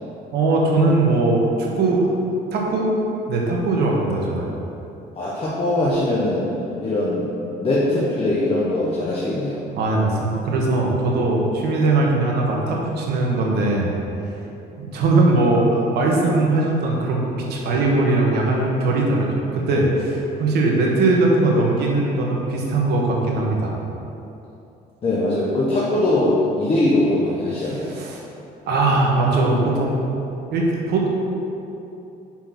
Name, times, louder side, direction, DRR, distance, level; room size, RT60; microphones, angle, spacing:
voice 1, 0.3-2.1 2.5-2.9 3.3-4.5 9.8-13.9 14.8-23.7 27.6-28.2 28.7-29.9 30.5-31.1, right 2 dB, 75° right, -2 dB, 1.4 m, -20 dB
voice 2, 5.2-6.5 6.8-7.3 7.6-9.6 25.0-27.9, left 1 dB, 35° left, -6 dB, 1.1 m, -21 dB
6.0 x 4.5 x 5.9 m, 2.8 s
cardioid pair, 110°, 17 cm